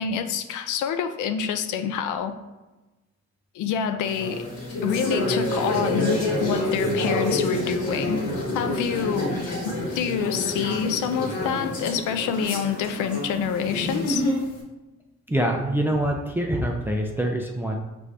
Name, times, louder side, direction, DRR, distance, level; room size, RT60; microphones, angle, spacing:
voice 1, 0.0-2.3 3.5-4.5 4.8-8.2 8.5-9.4 9.6-14.2, left 7 dB, 80° left, 9 dB, 0.5 m, -27 dB
sound 1, 4.0-14.6, left 1 dB, 55° left, 1.3 m, -28 dB
voice 2, 15.3-17.8, right 1 dB, 5° right, 1 dB, 0.4 m, -25 dB
4.6 x 2.6 x 3.2 m, 1.1 s
cardioid pair, 90°, 30 cm